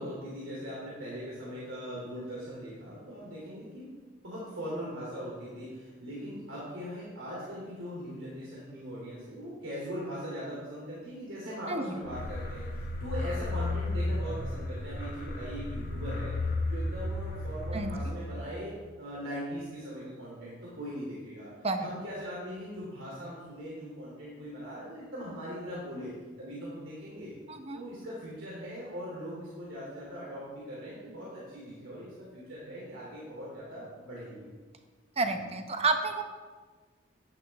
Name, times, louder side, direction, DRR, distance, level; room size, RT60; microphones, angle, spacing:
voice 1, 0.0-3.9 4.2-21.5 21.8-27.3 27.7-34.5, equal, 90° right, -7 dB, 2.9 m, -40 dB
voice 2, 11.7-12.0 17.7-17.9 21.6-21.9 27.5-27.8 35.2-36.2, right 3 dB, 30° right, 6 dB, 0.9 m, -30 dB
sound 1, 12.0-18.6, left 2 dB, 50° left, 1.2 m, -34 dB
11.0 x 10.5 x 3.5 m, 1.5 s
head